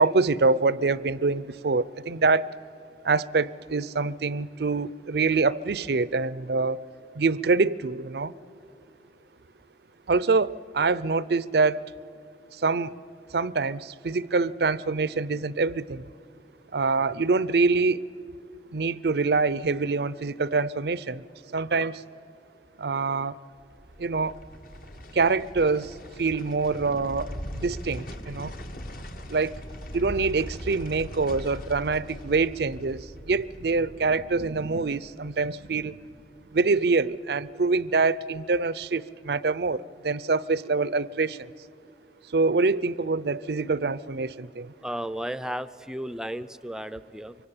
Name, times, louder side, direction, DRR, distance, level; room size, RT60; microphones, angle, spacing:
voice 1, 0.0-2.5 3.0-6.8 7.2-8.3 10.1-11.9 12.5-13.0 13.3-16.1 16.7-18.0 18.7-21.2 21.5-22.0 22.8-23.4 24.0-24.4 25.1-28.5 29.3-29.6 29.9-36.0 36.5-41.5 42.3-44.7, right 4 dB, 65° right, 19 dB, 0.6 m, -25 dB
sound 1, 23.6-36.7 37.0-37.1, equal, 50° left, 1.5 m, -41 dB
voice 2, 44.8-47.4, equal, 5° right, 15 dB, 0.5 m, -34 dB
24.5 x 24.0 x 8.8 m, 2.5 s
head